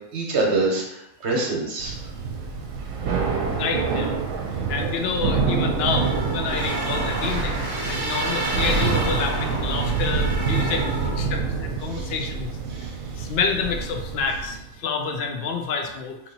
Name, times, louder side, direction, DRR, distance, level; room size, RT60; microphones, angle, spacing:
voice 1, 0.1-2.0 11.9-12.1 12.7-12.9, right 2 dB, 55° right, -1 dB, 1.1 m, -25 dB
Thunder / Rain, 1.8-14.7, right 5 dB, 80° right, 1.0 m, -27 dB
voice 2, 3.6-4.2 4.7-7.6 7.9-12.5 13.1-16.2, left 5 dB, 65° left, 4 dB, 0.7 m, -28 dB
sound 1, 5.8-11.2, right 1 dB, 25° right, 0.5 m, -30 dB
2.9 x 2.7 x 3.9 m, 0.85 s
omnidirectional pair, 1.4 m